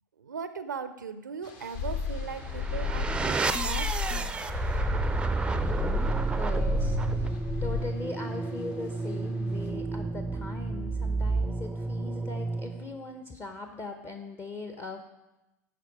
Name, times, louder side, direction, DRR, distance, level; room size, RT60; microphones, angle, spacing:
voice 1, 0.2-4.4, right 6 dB, 80° right, 12 dB, 0.4 m, -38 dB
sound 1, 1.4-9.7, left 4 dB, 50° left, 1.2 m, -54 dB
sound 2, 1.7-7.8, left 5 dB, 65° left, 0.8 m, -32 dB
sound 3, 2.3-13.0, right 4 dB, 10° right, 0.4 m, -30 dB
voice 2, 6.2-15.0, left 3 dB, 25° left, 6 dB, 0.7 m, -40 dB
10.0 x 4.6 x 5.0 m, 0.97 s
figure-of-eight pair, 80°, 10 cm